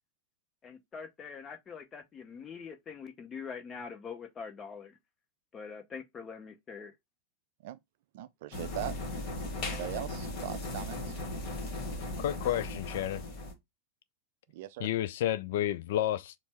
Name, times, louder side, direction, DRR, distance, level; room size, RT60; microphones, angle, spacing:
voice 1, 0.6-5.0 5.5-6.9, left 6 dB, 25° left, 0.7 m, -44 dB
voice 2, 8.1-8.9 9.7-11.2 14.5-14.9, right 13 dB, 50° right, 0.4 m, -40 dB
sound 1, 8.5-13.5, left 2 dB, 40° left, 1.4 m, -37 dB
voice 3, 12.2-13.2 14.8-16.3, left 12 dB, 55° left, 0.3 m, -31 dB
4.4 x 2.0 x 4.2 m
figure-of-eight pair, 90°, 0 cm